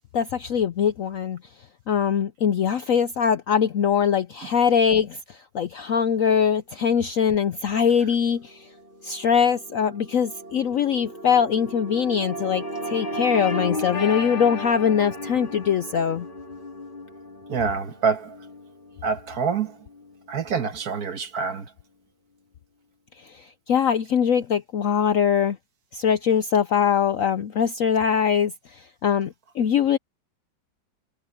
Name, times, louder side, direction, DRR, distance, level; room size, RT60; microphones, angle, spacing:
voice 1, 0.1-1.4 1.9-8.6 9.0-16.3 23.3-25.6 25.9-30.0, left 7 dB, 65° left, 0.8 m, -22 dB
sound 1, 8.0-20.4, left 1 dB, 25° left, 2.6 m, -35 dB
voice 2, 17.5-18.4 19.0-19.8 20.3-21.7, right 5 dB, 55° right, 1.8 m, -26 dB
omnidirectional pair, 2.0 m